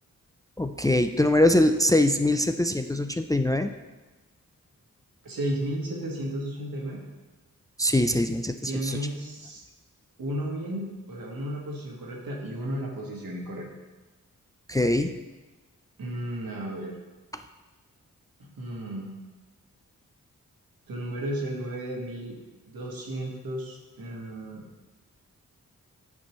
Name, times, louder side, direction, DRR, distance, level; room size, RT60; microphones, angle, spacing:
voice 1, 0.6-3.7 7.8-9.0 14.7-15.1, left 1 dB, 10° left, 7 dB, 0.3 m, -23 dB
voice 2, 5.2-7.0 8.7-9.6 10.2-13.7 16.0-16.9 18.6-19.1 20.9-22.4 22.7-24.6, right 1 dB, 85° right, -2 dB, 1.5 m, -33 dB
9.4 x 4.4 x 3.1 m, 1.2 s
cardioid pair, 45°, 34 cm